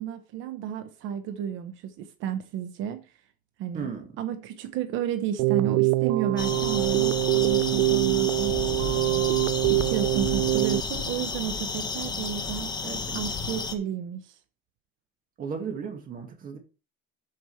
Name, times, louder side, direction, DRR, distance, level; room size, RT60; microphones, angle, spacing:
voice 1, 0.0-3.0 3.6-3.9 4.2-9.2 9.7-12.8 13.1-14.4, right 9 dB, 65° right, 1.0 m, -32 dB
voice 2, 3.7-4.1 12.8-13.3 15.4-16.6, right 6 dB, 40° right, 1.8 m, -35 dB
Keyboard (musical), 5.4-10.8, right 22 dB, 85° right, 0.4 m, -24 dB
sound 1, 6.4-13.8, left 4 dB, 20° left, 1.3 m, -32 dB
12.5 x 5.3 x 3.2 m
cardioid pair, 130°, 21 cm